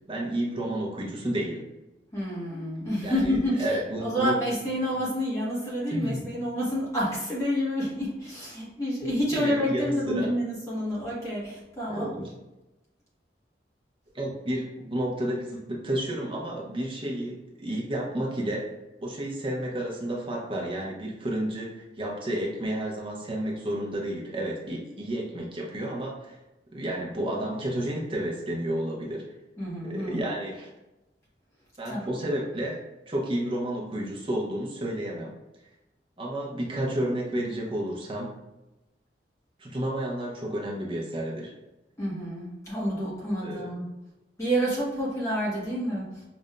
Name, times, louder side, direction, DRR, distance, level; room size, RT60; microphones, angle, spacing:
voice 1, 0.1-1.6 3.0-4.4 5.9-6.3 9.3-10.3 11.9-12.4 14.1-18.7 19.0-26.4 26.7-29.2 29.8-30.7 31.8-32.8 33.1-35.3 36.2-38.3 39.6-41.5 43.4-43.7, right 1 dB, 30° right, -3 dB, 0.8 m, -31 dB
voice 2, 2.1-12.1 29.6-30.3 31.8-32.2 42.0-43.9 44.4-46.2, equal, 15° left, -7 dB, 1.1 m, -29 dB
5.0 x 2.6 x 2.2 m, 0.99 s
head